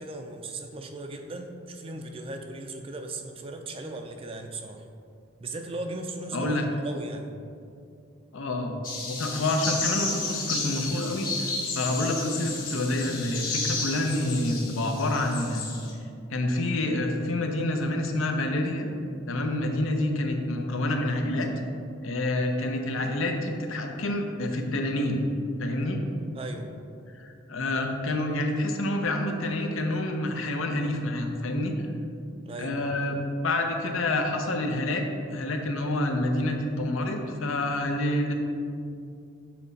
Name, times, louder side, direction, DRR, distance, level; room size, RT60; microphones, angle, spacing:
voice 1, 0.0-4.9 5.4-7.3 26.3-26.7 32.4-32.8, right 2 dB, 25° right, 4 dB, 0.4 m, -37 dB
voice 2, 6.3-6.6 8.3-8.8 9.1-11.5 11.7-15.7 16.3-18.9 19.3-21.5 22.0-25.3 25.6-26.0 27.2-31.7 32.6-35.0 35.3-38.3, left 1 dB, 80° left, 3 dB, 0.7 m, -28 dB
sound 1, 8.8-15.9, left 3 dB, 45° left, 1.3 m, -32 dB
7.8 x 4.2 x 4.0 m, 2.4 s
head